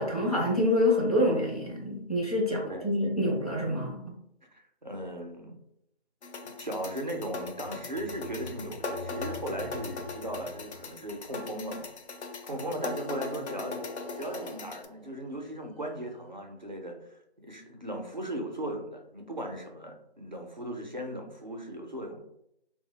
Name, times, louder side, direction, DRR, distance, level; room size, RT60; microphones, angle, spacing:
voice 1, 0.0-4.0, left 1 dB, 35° left, -2 dB, 0.6 m, -26 dB
voice 2, 4.5-5.6 6.6-13.8 14.2-22.2, right 1 dB, 45° right, 2 dB, 0.4 m, -38 dB
sound 1, 6.2-14.9, left 4 dB, 80° left, 0.5 m, -40 dB
sound 2, 7.2-11.8 12.6-16.0, left 1 dB, 65° left, 0.9 m, -45 dB
2.2 x 2.0 x 2.9 m, 0.77 s
figure-of-eight pair, 170°, 33 cm